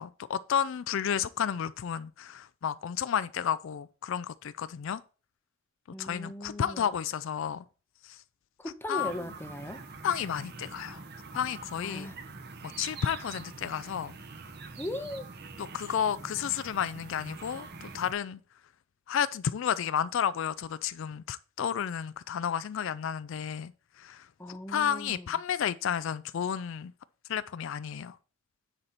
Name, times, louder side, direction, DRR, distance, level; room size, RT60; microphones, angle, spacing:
voice 1, 0.0-5.0 6.0-7.6 8.0-8.2 8.9-9.1 10.0-11.0 11.3-12.1 12.6-14.2 15.6-18.4 19.1-23.7 24.0-24.3 24.7-26.9 27.3-28.2, left 8 dB, 65° left, 0.4 m, -32 dB
voice 2, 5.9-7.0 8.6-9.8 11.8-12.2 14.8-15.3 24.4-25.3, left 1 dB, 10° left, 0.7 m, -38 dB
sound 1, 9.0-18.1, right 3 dB, 50° right, 1.1 m, -45 dB
9.7 x 4.3 x 4.1 m
head